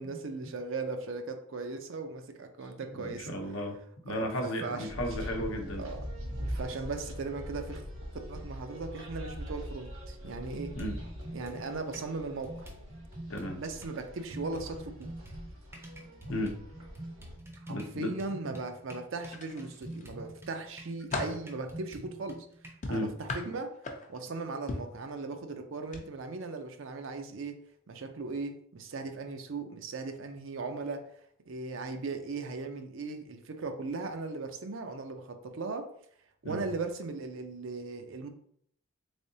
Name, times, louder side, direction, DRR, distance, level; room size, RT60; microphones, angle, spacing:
voice 1, 0.0-3.3 4.1-4.9 5.8-6.0 6.5-7.8 8.3-10.8 11.3-12.7 13.5-15.1 17.6-22.5 22.9-23.7 24.1-27.5 27.9-31.1 31.5-35.9 36.4-38.3, right 3 dB, 60° right, 7 dB, 0.5 m, -38 dB
voice 2, 2.9-3.8 4.0-5.9 10.8-11.0 13.3-13.6 16.3-16.6 17.7-18.1 18.5-18.6 22.9-23.1 36.4-36.6, left 1 dB, 70° left, 3 dB, 0.7 m, -34 dB
sound 1, 4.9-17.4, equal, 80° right, 1.5 m, -42 dB
sound 2, 10.5-12.1 12.4-13.9 14.3-22.7, right 1 dB, 10° right, 0.5 m, -46 dB
sound 3, 19.3-20.1 20.6-21.5 22.8-24.3 24.7-25.0 25.8-26.0 26.4-26.6, left 2 dB, 35° left, 0.5 m, -37 dB
3.7 x 3.3 x 2.7 m, 0.66 s
head